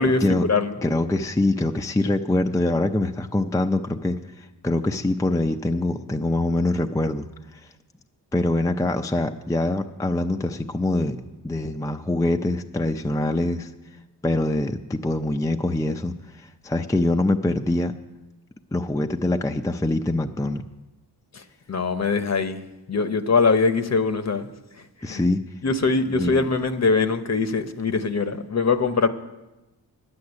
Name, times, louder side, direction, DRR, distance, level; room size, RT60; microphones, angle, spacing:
voice 1, 0.0-0.7 21.3-24.5 24.8-25.3 25.6-29.1, left 4 dB, 40° left, 0.9 m, -23 dB
voice 2, 0.8-7.6 8.3-13.7 14.2-17.9 18.7-20.6 25.0-25.4 26.1-26.5, left 2 dB, 10° left, 0.5 m, -24 dB
9.8 x 8.1 x 9.6 m
cardioid pair, 75°, 42 cm